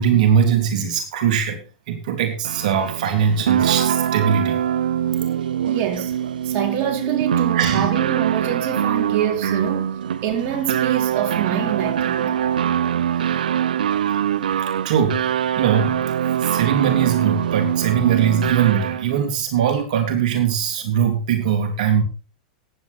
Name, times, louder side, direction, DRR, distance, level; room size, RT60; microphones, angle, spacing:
voice 1, 0.0-1.6 1.9-4.6 7.5-7.9 9.4-9.6 14.1-14.2 14.8-22.0, right 8 dB, 65° right, 3.4 m, -21 dB
sound 1, 2.4-19.2, right 9 dB, 90° right, 0.8 m, -23 dB
voice 2, 5.7-6.1 6.4-12.4, right 9 dB, 40° right, 4.0 m, -26 dB
15.5 x 10.0 x 4.2 m
hypercardioid pair, 130°, 4 cm